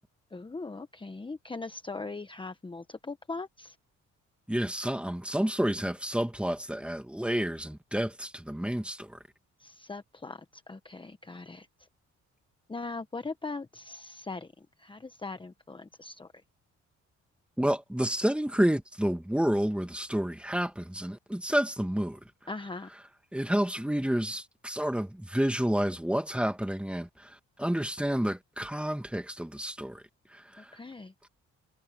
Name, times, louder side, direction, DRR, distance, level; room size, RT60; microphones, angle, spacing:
voice 1, 0.3-3.8 9.6-11.7 12.7-16.3 22.5-22.9 30.6-31.1, left 3 dB, 15° left, 1.1 m, -40 dB
voice 2, 4.5-9.2 17.6-22.2 23.3-30.0 30.3-30.7, equal, 5° right, 1.8 m, -30 dB
cardioid pair, 90°, 30 cm